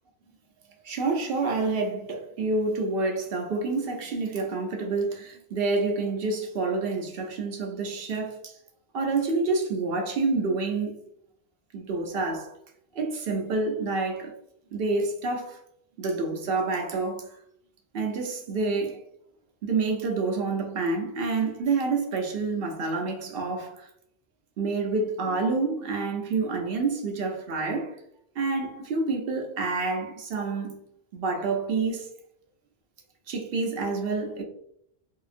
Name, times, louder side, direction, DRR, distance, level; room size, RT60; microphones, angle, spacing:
voice 1, 0.8-8.6 8.9-11.0 11.7-12.5 12.9-14.3 14.7-15.6 16.0-17.3 17.9-19.0 19.6-23.9 24.6-28.0 28.4-30.8 31.1-32.1 33.3-34.4, right 3 dB, 70° right, 0.8 m, -28 dB
2.8 x 2.5 x 2.4 m
omnidirectional pair, 1.1 m